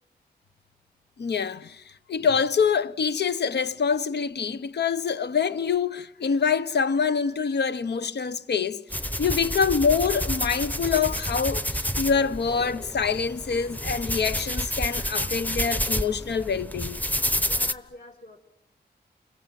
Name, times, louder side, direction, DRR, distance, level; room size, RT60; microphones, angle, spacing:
voice 1, 1.2-8.9 9.2-17.0, left 6 dB, 80° left, 0.9 m, -25 dB
sound 1, 8.9-17.7, equal, 10° left, 0.9 m, -29 dB
voice 2, 17.4-18.4, left 2 dB, 45° left, 2.5 m, -45 dB
29.5 x 22.5 x 7.5 m
wide cardioid pair, 85°, 17 cm